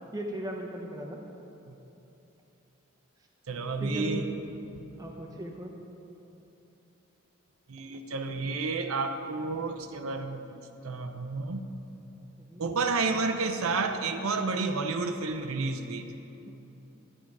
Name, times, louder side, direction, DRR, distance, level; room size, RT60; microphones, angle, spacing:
voice 1, 0.1-1.2 3.8-4.2 5.0-5.8 12.4-12.6 16.5-16.6, right 1 dB, 15° right, 0 dB, 0.7 m, -37 dB
voice 2, 3.5-4.3 7.7-11.6 12.6-16.0, right 3 dB, 85° right, 7 dB, 0.7 m, -31 dB
11.0 x 8.8 x 4.7 m, 3.0 s
head